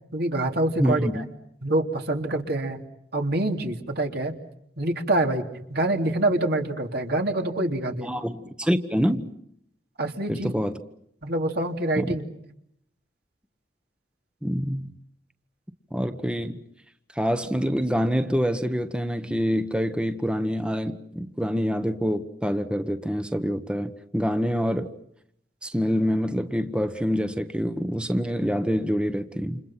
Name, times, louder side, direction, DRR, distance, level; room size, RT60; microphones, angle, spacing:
voice 1, 0.1-1.2 1.6-2.8 3.1-4.3 4.8-5.4 5.7-8.1 10.0-10.5 11.2-12.2, right 1 dB, 65° right, 3 dB, 3.2 m, -26 dB
voice 2, 0.8-1.2 8.0-9.3 10.3-10.8 12.0-12.1 14.4-14.9 15.9-16.6 17.1-24.9 25.6-29.6, equal, 5° right, 9 dB, 1.2 m, -26 dB
29.5 x 28.0 x 5.8 m, 0.73 s
head